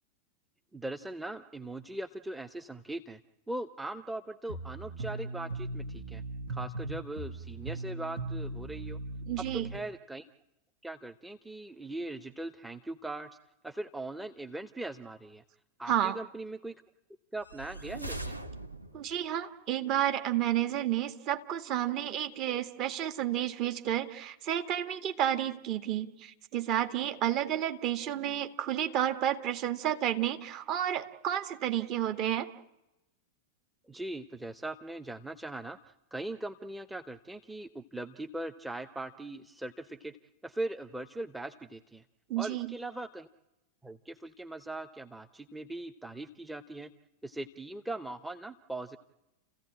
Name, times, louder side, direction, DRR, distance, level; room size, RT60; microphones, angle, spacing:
voice 1, 0.7-3.2 3.5-6.2 6.5-9.0 9.5-10.3 10.8-13.3 13.6-15.4 15.8-16.7 17.3-18.4 33.9-40.2 40.4-42.0 42.4-43.3 43.8-46.9 47.2-49.0, right 2 dB, 5° right, 10 dB, 0.8 m, -40 dB
sound 1, 4.5-9.8, right 2 dB, 65° right, 1.4 m, -38 dB
voice 2, 9.3-9.7 15.9-16.2 18.9-32.5 42.3-42.7, right 11 dB, 40° right, 7 dB, 1.8 m, -31 dB
sound 2, 17.4-19.2, right 2 dB, 85° right, 1.2 m, -41 dB
30.0 x 15.5 x 8.8 m, 0.95 s
figure-of-eight pair, 90°, 0 cm